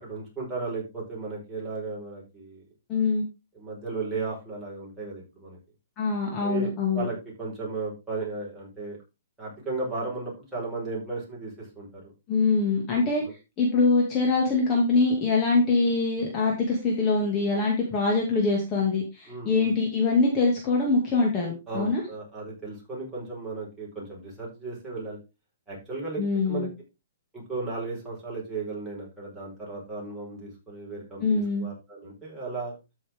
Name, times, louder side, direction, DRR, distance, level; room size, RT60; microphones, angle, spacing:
voice 1, 0.0-2.6 3.5-5.6 6.4-9.0 9.4-12.1 12.9-13.3 19.3-19.7 21.7-25.2 25.7-26.7 27.3-32.7, right 3 dB, 5° right, -6 dB, 4.8 m, -35 dB
voice 2, 2.9-3.2 6.0-7.1 12.3-13.2 13.6-22.0 26.2-26.7 31.2-31.7, left 3 dB, 20° left, -1 dB, 2.4 m, -24 dB
13.0 x 6.3 x 3.7 m, 0.27 s
hypercardioid pair, 160°, 0 cm